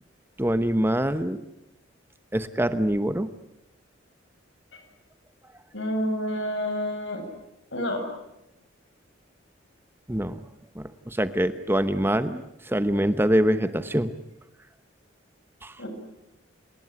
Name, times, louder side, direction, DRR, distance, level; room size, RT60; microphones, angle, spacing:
voice 1, 0.4-1.4 2.3-3.3 10.1-10.4 10.8-14.1 15.6-15.7, right 1 dB, 10° right, 11 dB, 0.9 m, -24 dB
voice 2, 5.7-7.2 7.7-8.0 15.8-15.9, equal, 75° left, 5 dB, 7.4 m, -29 dB
29.5 x 19.0 x 9.6 m, 0.87 s
head